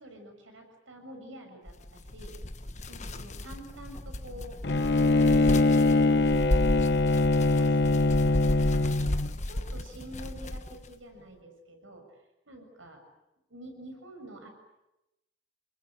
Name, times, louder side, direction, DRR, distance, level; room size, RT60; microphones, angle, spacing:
voice 1, 0.0-2.4 2.9-4.6 5.1-6.3 7.4-13.0 13.5-14.5, equal, 85° right, 5 dB, 6.9 m, -48 dB
sound 1, 1.7-10.9, left 1 dB, 35° left, 1.2 m, -33 dB
Bowed string instrument, 4.6-9.3, left 2 dB, 55° left, 0.9 m, -23 dB
29.0 x 21.0 x 8.9 m, 0.94 s
head